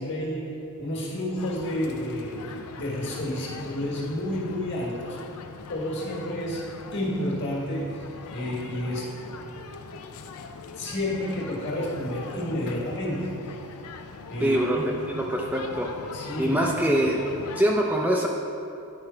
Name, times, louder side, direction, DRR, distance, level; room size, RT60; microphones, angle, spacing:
voice 1, 0.0-5.2 5.7-9.1 10.8-13.4 14.3-15.0 16.1-17.0, left 1 dB, 55° left, -3 dB, 1.8 m, -31 dB
sound 1, 1.4-17.6, left 4 dB, 80° left, 0.5 m, -41 dB
voice 2, 14.4-14.8 15.1-15.9 16.4-17.2 17.6-18.3, right 1 dB, 5° right, -1 dB, 0.4 m, -23 dB
9.9 x 4.9 x 4.4 m, 2.7 s
head